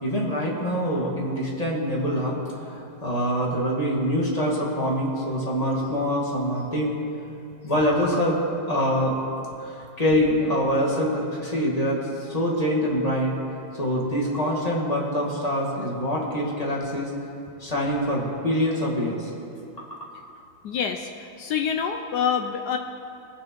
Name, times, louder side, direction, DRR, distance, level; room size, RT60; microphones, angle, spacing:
voice 1, 0.0-7.0 7.6-8.4 8.7-9.2 9.6-13.3 13.8-17.1 17.6-19.3 19.8-20.1, equal, 20° left, -5 dB, 1.8 m, -25 dB
voice 2, 20.6-22.8, left 7 dB, 75° left, 5 dB, 1.0 m, -26 dB
19.5 x 6.8 x 4.5 m, 2.6 s
omnidirectional pair, 2.2 m